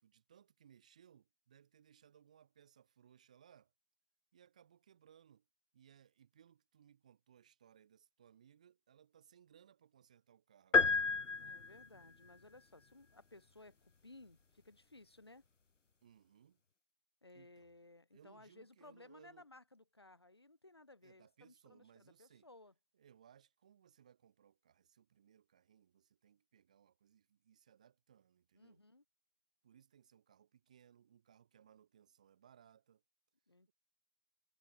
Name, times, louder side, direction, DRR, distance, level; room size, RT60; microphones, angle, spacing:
voice 1, 0.0-3.7 4.3-5.5 5.7-11.1 16.0-16.6 17.3-17.7 18.1-19.5 21.0-22.5 22.9-28.8 29.6-33.0, right 9 dB, 5° right, 3.7 m, -66 dB
sound 1, 10.7-12.0, left 4 dB, 55° left, 0.6 m, -31 dB
voice 2, 11.4-15.4 17.2-22.7 28.5-29.0 33.5-33.7, left 2 dB, 15° left, 2.9 m, -60 dB
figure-of-eight pair, 175°, 44 cm